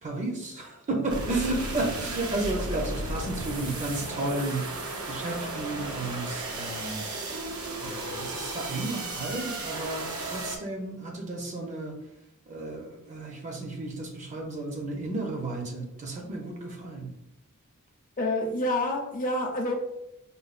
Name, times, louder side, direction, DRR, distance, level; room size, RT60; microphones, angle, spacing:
voice 1, 0.0-4.6 5.1-7.0 7.8-12.0 12.5-17.1, right 2 dB, 35° right, 1 dB, 0.6 m, -33 dB
sound 1, 1.1-10.6, right 2 dB, 70° right, 0.7 m, -34 dB
voice 2, 18.2-19.8, left 1 dB, 40° left, 1 dB, 0.6 m, -28 dB
5.2 x 2.3 x 2.4 m, 0.89 s
head